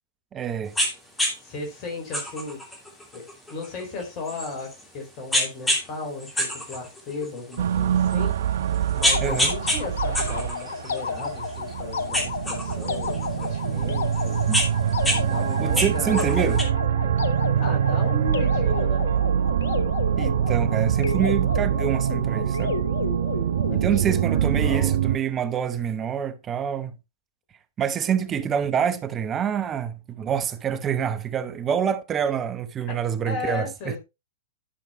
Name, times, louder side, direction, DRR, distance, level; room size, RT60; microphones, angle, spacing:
voice 1, 0.3-0.7 9.2-9.5 15.6-16.6 20.2-22.8 23.7-26.9 27.8-34.0, right 8 dB, 25° right, 0.8 m, -26 dB
sound 1, 0.7-0.9 1.2-1.3 2.1-4.8 5.3-5.9 6.2-7.6 8.1-8.2 8.7-9.8 10.1-11.7 12.1-13.5 14.1-15.2 15.5-16.6, left 1 dB, 10° left, 2.8 m, -26 dB
voice 2, 1.4-2.6 3.1-8.3 8.9-14.4 15.1-16.6 17.6-19.1 23.7-24.9 32.9-33.0 33.3-34.0, left 3 dB, 35° left, 4.0 m, -35 dB
sound 2, 7.6-25.2, right 9 dB, 60° right, 0.4 m, -24 dB
sound 3, 9.0-24.2, left 6 dB, 65° left, 0.9 m, -32 dB
11.5 x 6.3 x 3.0 m
figure-of-eight pair, 105°, 0 cm